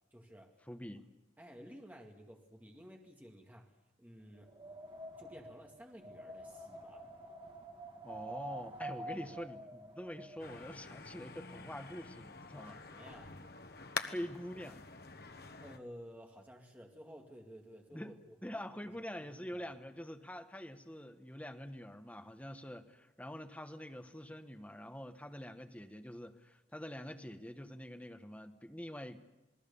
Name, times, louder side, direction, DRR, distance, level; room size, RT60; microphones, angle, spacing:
voice 1, 0.1-0.6 1.4-3.7 4.0-4.5 5.2-7.1 9.2-9.4 12.7-13.4 15.6-18.4 18.8-18.9 19.4-19.7, equal, 10° right, 1 dB, 2.1 m, -54 dB
voice 2, 0.7-1.0 8.0-12.8 14.0-14.8 17.9-18.2 18.4-29.2, equal, 10° left, 6 dB, 1.2 m, -45 dB
Wind, 4.4-10.4, right 1 dB, 30° right, 2.4 m, -47 dB
sound 1, 10.4-15.8, left 5 dB, 60° left, 1.3 m, -46 dB
28.0 x 20.0 x 7.0 m, 0.97 s
head